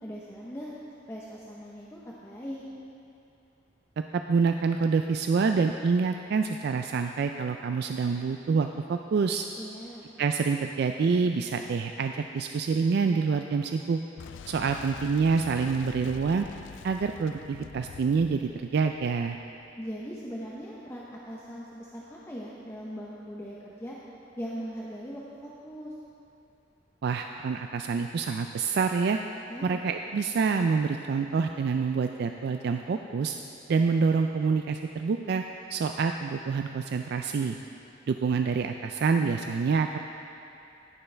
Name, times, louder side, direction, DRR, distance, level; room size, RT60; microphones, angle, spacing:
voice 1, 0.0-0.7 1.1-2.6 9.6-10.0 19.8-24.0 24.4-25.9 29.5-29.8, equal, 15° left, -6 dB, 0.8 m, -40 dB
voice 2, 4.1-9.5 10.2-14.0 14.5-16.5 16.8-19.4 27.0-29.2 29.6-33.4 33.7-35.4 35.7-37.6 38.1-40.0, right 5 dB, 60° right, 5 dB, 0.3 m, -27 dB
Boom, 14.2-19.7, left 6 dB, 90° left, 0.3 m, -46 dB
18.5 x 6.9 x 3.3 m, 2.7 s
head